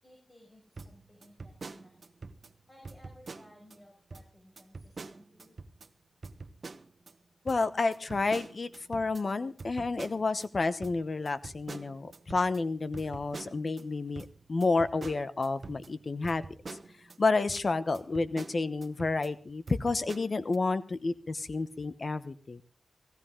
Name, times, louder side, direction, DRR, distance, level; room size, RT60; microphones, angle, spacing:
voice 1, 0.0-2.1 2.7-5.6, left 1 dB, 20° left, 0 dB, 5.9 m, -58 dB
sound 1, 0.8-2.5 2.8-3.8 4.1-4.3 4.6-5.9 6.2-7.1 7.5-10.5 10.8-13.8 14.2-17.2 17.5-17.6 17.9-19.3 19.7-20.6, right 3 dB, 60° right, 1.1 m, -46 dB
voice 2, 7.4-16.4 17.2-22.6, left 3 dB, 55° left, 12 dB, 1.0 m, -30 dB
18.0 x 16.0 x 3.8 m, 0.38 s
wide cardioid pair, 75°, 0 cm